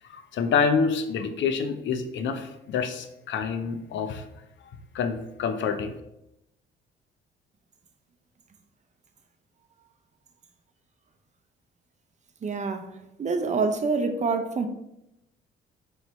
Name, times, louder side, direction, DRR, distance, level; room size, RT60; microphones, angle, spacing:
voice 1, 0.1-4.2 4.9-5.9, left 5 dB, 70° left, 9 dB, 0.5 m, -27 dB
voice 2, 12.4-12.9 13.2-14.7, right 4 dB, 35° right, 6 dB, 0.5 m, -26 dB
5.3 x 3.1 x 3.0 m, 0.86 s
cardioid pair, 90°, 20 cm